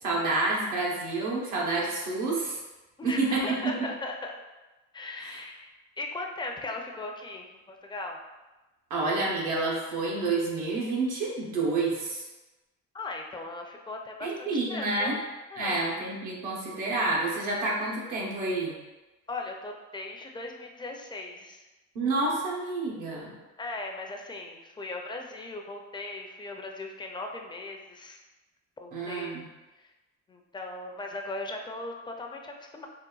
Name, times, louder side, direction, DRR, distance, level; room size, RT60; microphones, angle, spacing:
voice 1, 0.0-2.6 3.0-3.9 5.2-5.4 8.9-12.3 14.2-15.2 15.6-18.8 21.9-23.3 28.9-29.4, right 3 dB, 85° right, -4 dB, 0.8 m, -29 dB
voice 2, 3.0-4.4 4.9-8.2 12.9-15.2 15.5-15.8 19.3-21.7 23.6-28.2 28.8-29.4 29.8-29.9 30.3-32.9, left 2 dB, 15° left, 2 dB, 0.4 m, -38 dB
3.9 x 2.2 x 2.3 m, 1.1 s
cardioid pair, 90°, 30 cm